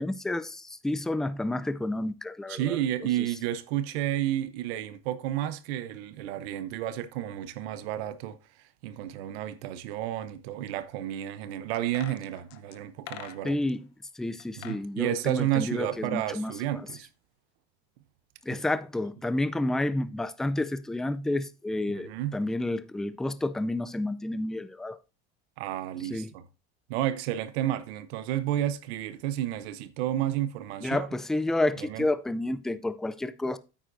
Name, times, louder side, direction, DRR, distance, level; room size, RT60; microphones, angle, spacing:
voice 1, 0.0-2.8 13.4-13.8 14.2-16.5 18.4-25.0 26.1-26.3 30.8-33.6, left 2 dB, ahead, 0.4 m, -30 dB
voice 2, 2.5-8.4 8.8-13.6 14.6-17.1 18.5-18.6 21.9-22.4 25.6-26.5 26.9-31.1 31.8-32.1, right 12 dB, 80° right, 0.8 m, -31 dB
sound 1, 11.7-13.8 14.4-14.8 15.1-16.5 16.8-16.9, left 12 dB, 55° left, 1.0 m, -46 dB
9.1 x 8.8 x 2.6 m
supercardioid pair, 110°, 31 cm